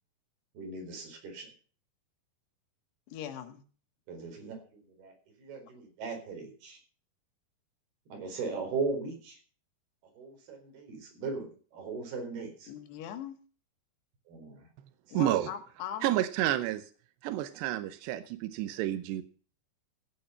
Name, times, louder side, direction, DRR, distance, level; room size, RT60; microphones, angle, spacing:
voice 1, 0.5-1.5 4.1-5.1 5.4-6.8 8.1-9.4 10.1-12.7 14.3-14.7 15.2-15.5, right 4 dB, 70° right, 6.3 m, -38 dB
voice 2, 3.1-3.6 12.7-13.4 15.1-16.2, left 10 dB, 80° left, 3.7 m, -40 dB
voice 3, 15.1-15.5 16.0-16.9 17.2-19.2, right 13 dB, 90° right, 3.0 m, -30 dB
15.5 x 8.9 x 5.7 m
omnidirectional pair, 4.8 m